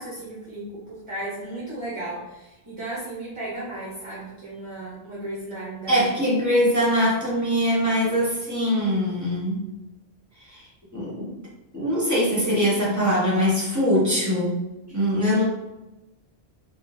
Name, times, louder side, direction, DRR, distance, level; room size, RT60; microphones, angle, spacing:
voice 1, 0.0-6.0 14.9-15.0, right 1 dB, 35° right, -6 dB, 0.6 m, -35 dB
voice 2, 5.9-9.6 10.5-10.6 10.9-11.3 11.7-14.6 14.9-15.4, equal, 15° right, -7 dB, 1.0 m, -22 dB
3.7 x 2.1 x 2.5 m, 1.0 s
omnidirectional pair, 1.1 m